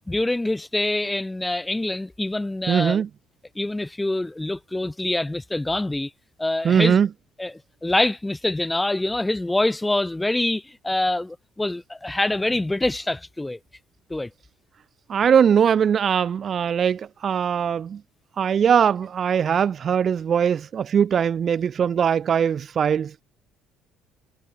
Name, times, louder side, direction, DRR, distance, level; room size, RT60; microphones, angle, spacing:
voice 1, 0.1-3.0 3.5-6.1 6.4-7.0 7.4-13.6 14.1-14.3, left 2 dB, 10° left, 1.1 m, -25 dB
voice 2, 2.7-3.1 6.6-7.1 15.1-18.0 18.4-23.2, right 8 dB, 45° right, 0.4 m, -21 dB
supercardioid pair, 70°, 0 cm